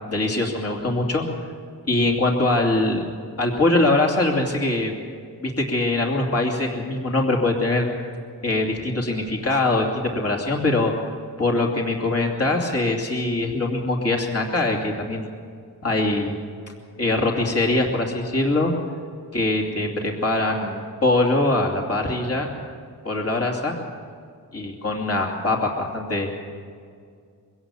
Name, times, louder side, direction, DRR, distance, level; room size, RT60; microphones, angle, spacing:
voice 1, 0.1-1.2 1.9-3.0 3.4-4.9 5.4-7.9 8.4-10.9 11.4-15.3 15.8-16.4 17.0-18.7 19.3-22.5 23.0-23.8 24.5-26.3, left 2 dB, 35° left, 0 dB, 2.8 m, -22 dB
23.0 x 16.5 x 7.1 m, 2.2 s
wide cardioid pair, 100°, 40 cm